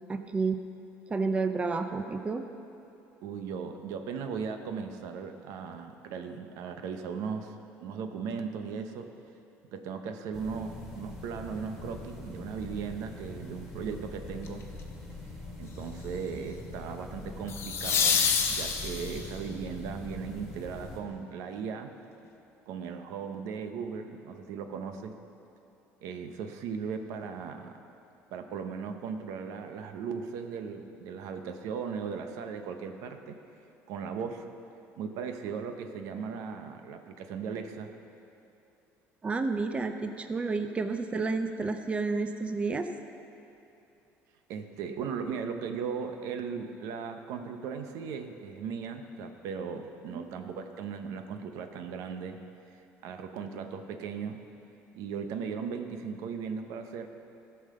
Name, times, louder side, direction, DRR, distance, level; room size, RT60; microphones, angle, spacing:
voice 1, 0.1-0.6 1.1-2.5 39.2-42.9 50.1-50.2, right 4 dB, 20° right, 7 dB, 0.6 m, -30 dB
voice 2, 3.2-9.1 9.7-14.6 15.6-21.9 22.7-25.1 26.0-27.8 28.3-33.4 33.9-34.4 35.0-37.9 44.5-52.4 53.0-54.4 54.9-57.1, right 6 dB, 75° right, 7 dB, 0.8 m, -37 dB
sound 1, 10.3-21.0, left 2 dB, ahead, 2.4 m, -43 dB
sound 2, 14.4-14.8 17.5-19.4 22.2-22.3, left 6 dB, 50° left, 1.1 m, -27 dB
14.0 x 5.6 x 6.7 m, 2.9 s
cardioid pair, 115°, 6 cm